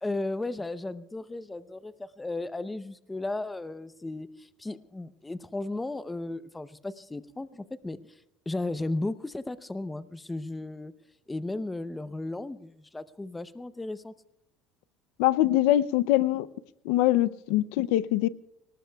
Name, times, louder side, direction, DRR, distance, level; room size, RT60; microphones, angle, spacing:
voice 1, 0.0-8.1 8.5-10.9 11.3-14.1, left 2 dB, 10° left, 14 dB, 0.7 m, -35 dB
voice 2, 15.2-16.5 16.9-18.3, left 14 dB, 85° left, 17 dB, 0.5 m, -23 dB
24.5 x 19.5 x 2.3 m, 0.80 s
cardioid pair, 130°, 0 cm